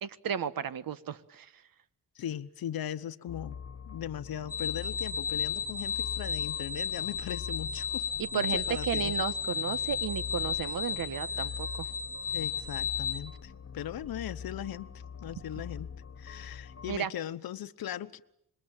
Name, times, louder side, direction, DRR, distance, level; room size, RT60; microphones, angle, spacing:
voice 1, 0.0-1.5 8.2-11.9 16.9-17.1, right 8 dB, 70° right, 1.4 m, -34 dB
voice 2, 2.1-3.6 3.9-8.1 8.3-9.2 12.3-14.9 15.2-15.9 16.2-18.2, left 10 dB, 80° left, 1.0 m, -39 dB
sound 1, 3.3-17.0, left 6 dB, 40° left, 1.5 m, -44 dB
sound 2, 4.5-13.2, left 7 dB, 25° left, 1.4 m, -33 dB
26.5 x 22.0 x 9.0 m
cardioid pair, 100°, 35 cm